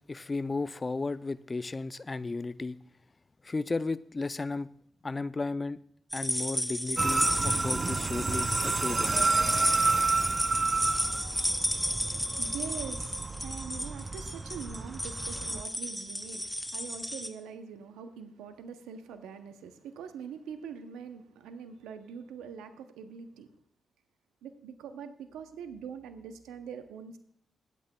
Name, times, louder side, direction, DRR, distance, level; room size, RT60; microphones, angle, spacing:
voice 1, 0.0-2.8 3.4-4.7 5.0-5.8 6.1-9.2, left 3 dB, 35° left, 0.5 m, -34 dB
sound 1, 6.1-17.3, equal, 5° left, 1.3 m, -33 dB
sound 2, 7.0-15.6, right 3 dB, 40° right, 0.5 m, -30 dB
voice 2, 11.6-23.5 24.4-27.2, right 6 dB, 85° right, 0.7 m, -43 dB
23.0 x 8.3 x 2.3 m
hypercardioid pair, 40°, 0 cm